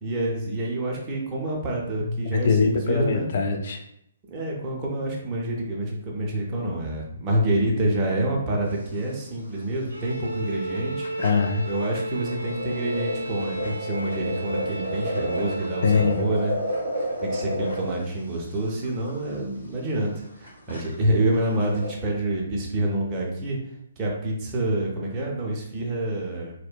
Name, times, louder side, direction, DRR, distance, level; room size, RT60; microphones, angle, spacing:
voice 1, 0.0-3.3 4.3-11.1 11.7-16.5 17.0-23.6 24.0-26.5, right 1 dB, 20° right, -2 dB, 0.5 m, -27 dB
voice 2, 2.2-3.8 11.2-11.6 15.8-16.2, left 5 dB, 45° left, 4 dB, 0.4 m, -22 dB
sound 1, 8.6-9.1 9.4-9.5 9.8-9.9 10.4-10.5 10.7-21.9, equal, 85° left, 1.3 m, -32 dB
Bowed string instrument, 9.9-16.3, equal, 75° right, 0.4 m, -33 dB
2.6 x 2.1 x 2.2 m, 0.74 s
figure-of-eight pair, 130°, 0 cm